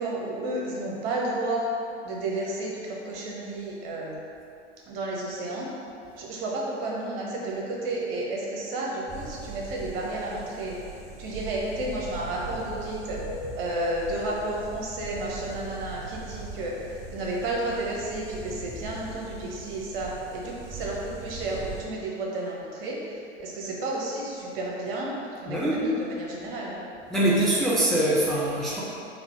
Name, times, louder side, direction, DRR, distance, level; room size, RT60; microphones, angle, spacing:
voice 1, 0.0-1.7 2.0-4.2 4.9-5.7 6.2-10.8 11.2-13.2 13.5-26.8, right 2 dB, 50° right, -3 dB, 1.1 m, -32 dB
sound 1, 9.1-21.8, right 3 dB, 20° right, 1.0 m, -40 dB
voice 2, 25.5-25.8 27.1-28.8, right 1 dB, ahead, -8 dB, 0.5 m, -23 dB
3.9 x 2.7 x 4.5 m, 2.6 s
figure-of-eight pair, 90°, 36 cm